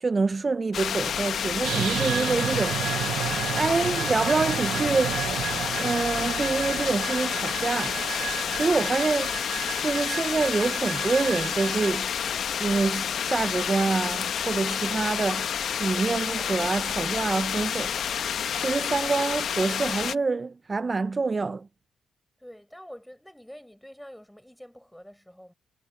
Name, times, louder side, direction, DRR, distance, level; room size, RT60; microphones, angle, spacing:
voice 1, 0.0-2.8 3.2-5.2 5.8-8.0 8.5-9.4 9.8-12.1 12.6-15.5 15.8-17.9 18.6-21.7, right 4 dB, 30° right, 0.4 m, -26 dB
sound 1, 0.7-20.2, left 8 dB, 60° left, 1.0 m, -29 dB
sound 2, 1.6-11.9, right 10 dB, 75° right, 0.6 m, -32 dB
voice 2, 22.4-25.5, equal, 5° left, 7.1 m, -46 dB
cardioid pair, 90°, 0 cm